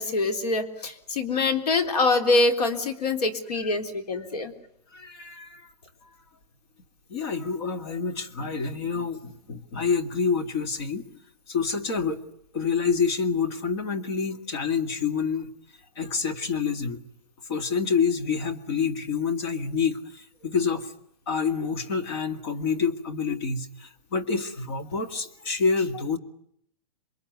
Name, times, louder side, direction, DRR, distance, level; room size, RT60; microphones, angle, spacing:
voice 1, 0.0-4.5, left 3 dB, 70° left, 7 dB, 3.5 m, -24 dB
voice 2, 4.9-5.7 7.1-11.1 11.5-12.2 12.5-15.5 16.0-17.0 17.5-20.9 21.3-26.2, left 5 dB, 35° left, 8 dB, 2.1 m, -27 dB
27.5 x 23.0 x 9.5 m, 0.71 s
hypercardioid pair, 170°, 21 cm